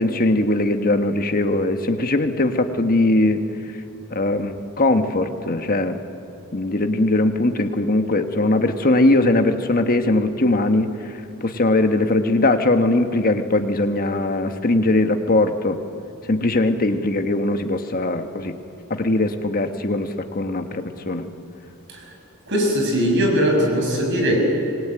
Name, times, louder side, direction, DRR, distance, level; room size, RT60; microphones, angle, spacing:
voice 1, 0.0-3.4 4.1-6.0 6.5-15.8 16.3-18.5 18.9-21.3, left 2 dB, 40° left, 6 dB, 1.5 m, -20 dB
voice 2, 22.5-24.4, equal, 55° right, 1 dB, 6.6 m, -20 dB
26.0 x 21.0 x 9.2 m, 2.7 s
head